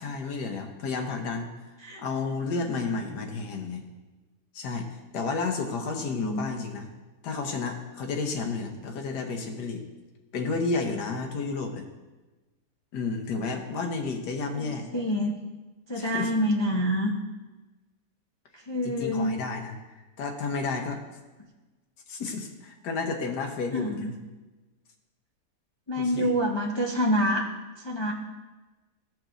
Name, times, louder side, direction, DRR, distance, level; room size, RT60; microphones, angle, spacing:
voice 1, 0.0-1.5 2.0-3.8 4.5-4.9 5.1-6.9 7.2-9.8 10.3-11.8 12.9-14.8 15.9-16.3 18.8-19.8 20.2-21.0 22.1-24.1 26.0-26.3, left 4 dB, 90° left, 3 dB, 1.6 m, -31 dB
voice 2, 6.0-6.5 14.3-15.3 15.9-17.1 18.7-19.3 23.7-24.1 25.9-27.5 27.8-28.1, equal, 45° left, -2 dB, 0.3 m, -27 dB
15.5 x 6.0 x 2.6 m, 1.2 s
omnidirectional pair, 1.7 m